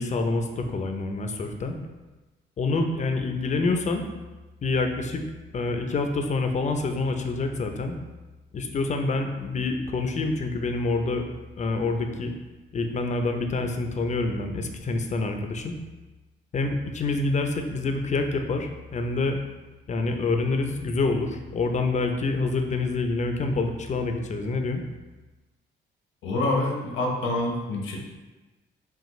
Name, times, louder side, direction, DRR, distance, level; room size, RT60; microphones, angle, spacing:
voice 1, 0.0-1.8 2.6-4.1 4.6-5.2 5.5-8.0 8.5-11.3 11.6-12.3 12.7-15.7 16.5-19.4 19.9-24.8, left 3 dB, 35° left, 5 dB, 0.5 m, -27 dB
voice 2, 26.2-28.0, left 2 dB, 85° left, 0 dB, 0.9 m, -26 dB
5.7 x 2.4 x 3.1 m, 1.2 s
cardioid pair, 90°, 20 cm